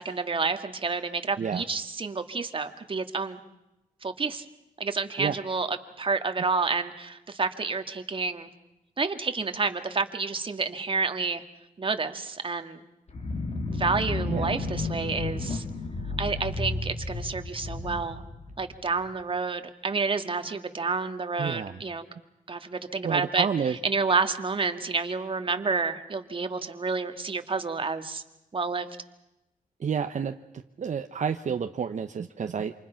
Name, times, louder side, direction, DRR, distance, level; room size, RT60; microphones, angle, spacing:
voice 1, 0.0-3.4 4.0-4.4 4.8-8.5 9.0-11.4 11.8-12.8 13.7-15.6 16.2-18.2 18.6-22.1 22.5-28.2 28.5-28.9, right 4 dB, 40° right, 8 dB, 1.9 m, -29 dB
sound 1, 13.1-19.1, left 3 dB, 50° left, 3.1 m, -32 dB
voice 2, 21.4-21.8 23.0-23.8 29.8-30.4 30.8-32.7, right 7 dB, 60° right, 7 dB, 1.0 m, -29 dB
28.0 x 27.0 x 5.8 m, 0.96 s
cardioid pair, 95°, 14 cm